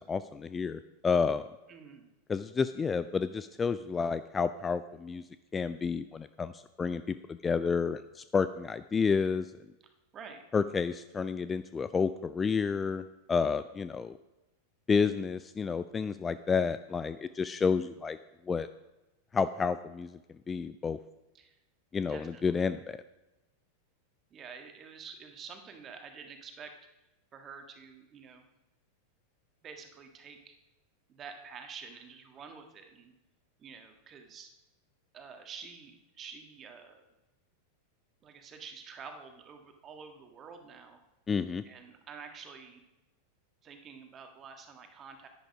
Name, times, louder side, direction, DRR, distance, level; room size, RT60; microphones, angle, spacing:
voice 1, 0.0-1.5 2.3-5.2 5.5-7.0 7.3-9.5 10.5-14.1 14.9-18.2 18.5-18.7 19.3-20.2 20.5-21.0 21.9-23.0 41.3-41.6, left 5 dB, 15° left, 13 dB, 0.4 m, -30 dB
voice 2, 1.7-2.1 10.1-10.4 21.3-21.6 22.1-22.7 24.3-26.7 27.3-28.4 29.6-30.5 31.1-33.1 33.6-34.5 35.1-37.1 38.2-41.0 41.6-42.8 43.6-45.3, right 6 dB, 25° right, 5 dB, 1.7 m, -48 dB
10.5 x 10.5 x 5.0 m, 0.98 s
figure-of-eight pair, 90°, 0 cm